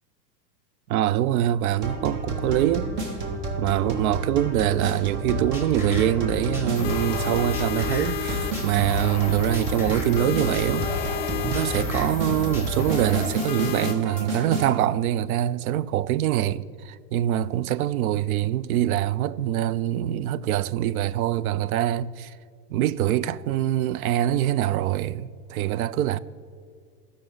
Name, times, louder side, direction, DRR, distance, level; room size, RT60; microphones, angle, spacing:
voice 1, 0.9-2.9 3.6-10.9 11.4-22.3 22.7-26.2, right 12 dB, 60° right, 0.5 m, -24 dB
sound 1, 1.8-14.7, right 2 dB, 35° right, 1.8 m, -31 dB
sound 2, 5.3-13.3, left 3 dB, 5° right, 2.1 m, -33 dB
sound 3, 6.7-13.9, left 15 dB, 40° left, 0.4 m, -34 dB
16.5 x 5.6 x 3.8 m
hypercardioid pair, 105°, 50 cm